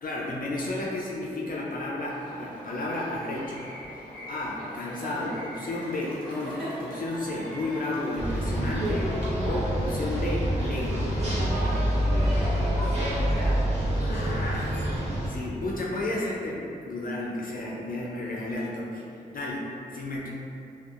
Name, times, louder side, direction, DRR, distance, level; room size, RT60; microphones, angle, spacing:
voice 1, 0.0-3.6 4.3-9.1 9.4-11.0 14.0-14.8 15.3-19.0 19.3-20.3, left 2 dB, 55° left, -4 dB, 0.4 m, -32 dB
sound 1, 2.1-13.5, equal, 5° left, 1.2 m, -41 dB
sound 2, 8.2-15.3, equal, 40° right, 1.0 m, -26 dB
voice 2, 11.9-13.6, equal, 75° right, -9 dB, 0.8 m, -37 dB
2.6 x 2.2 x 2.4 m, 2.7 s
cardioid pair, 40°, 18 cm